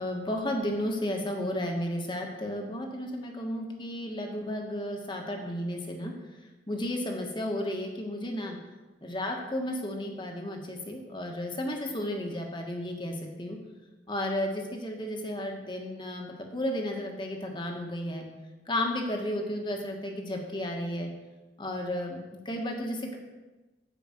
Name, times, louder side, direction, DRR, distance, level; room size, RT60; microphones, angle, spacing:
voice 1, 0.0-6.1 6.7-8.6 9.0-13.6 14.1-18.3 18.7-21.1 21.6-22.2 22.4-23.2, left 1 dB, 25° left, 2 dB, 1.4 m, -33 dB
9.4 x 5.9 x 7.6 m, 1.2 s
head